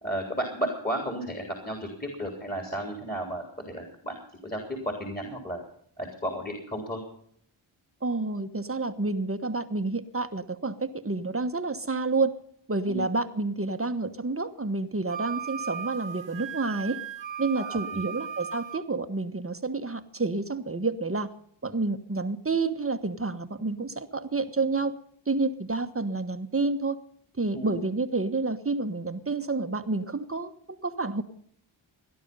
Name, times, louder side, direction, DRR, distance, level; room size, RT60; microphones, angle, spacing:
voice 1, 0.0-5.6 6.0-7.0 12.9-13.0 17.6-18.0 27.5-27.8, right 1 dB, 20° left, 2 dB, 3.9 m, -33 dB
voice 2, 8.0-12.3 12.7-17.0 17.4-21.3 21.6-24.9 25.3-27.0 27.4-30.5 30.8-31.2, right 3 dB, 30° right, 9 dB, 1.2 m, -29 dB
Wind instrument woodwind instrument, 15.1-18.8, right 8 dB, 65° right, 1.3 m, -36 dB
18.0 x 11.0 x 5.5 m, 0.64 s
cardioid pair, 50°, 48 cm